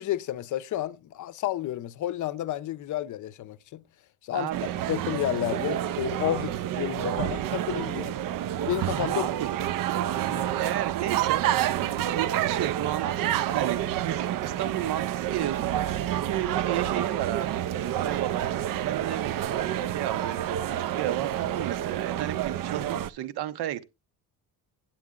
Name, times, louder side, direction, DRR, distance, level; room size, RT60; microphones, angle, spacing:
voice 1, 0.0-3.8 4.2-4.5 4.9-8.1 8.7-9.3 10.3-10.5, left 13 dB, 50° left, 0.6 m, -31 dB
voice 2, 4.3-4.7 9.1-9.5 10.5-18.5 18.8-19.4 19.9-23.8, right 12 dB, 75° right, 1.0 m, -33 dB
sound 1, 4.5-23.1, right 11 dB, 55° right, 0.5 m, -29 dB
9.1 x 8.5 x 3.7 m
cardioid pair, 165°, 39 cm